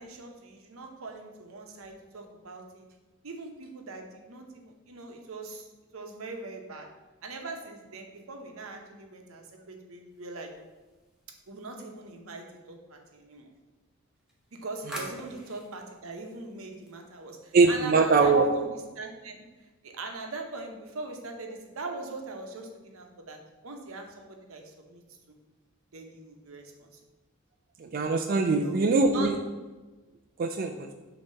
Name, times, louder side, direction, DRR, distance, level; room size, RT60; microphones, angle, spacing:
voice 1, 0.0-2.8 3.2-5.7 5.9-6.9 7.2-10.5 11.5-13.5 14.6-19.4 19.8-25.0 25.9-27.0 28.5-28.8 29.1-29.3, right 3 dB, 85° right, 3 dB, 0.9 m, -41 dB
sound 1, 10.1-11.9 14.1-17.4, equal, 5° right, 0.9 m, -47 dB
voice 2, 17.5-18.5 27.8-29.3 30.4-30.9, right 4 dB, 45° right, 4 dB, 0.3 m, -22 dB
6.3 x 2.9 x 5.6 m, 1.2 s
head